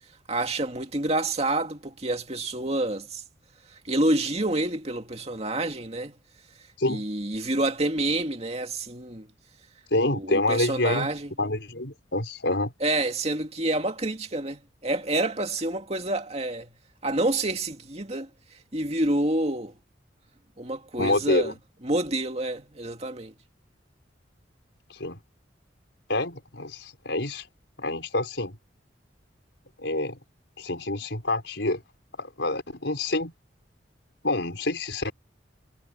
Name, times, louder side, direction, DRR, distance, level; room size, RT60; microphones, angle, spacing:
voice 1, 0.3-3.2 3.8-6.1 6.9-9.3 10.1-11.3 12.8-16.7 17.0-18.3 18.7-19.7 20.6-21.5 21.8-23.3, right 2 dB, 35° right, 2.4 m, -28 dB
voice 2, 9.9-11.1 11.4-12.7 21.0-21.5 24.9-25.2 26.1-27.5 27.8-28.6 29.8-30.2 30.6-31.8 32.2-33.3 34.2-35.1, left 2 dB, 70° left, 4.8 m, -27 dB
head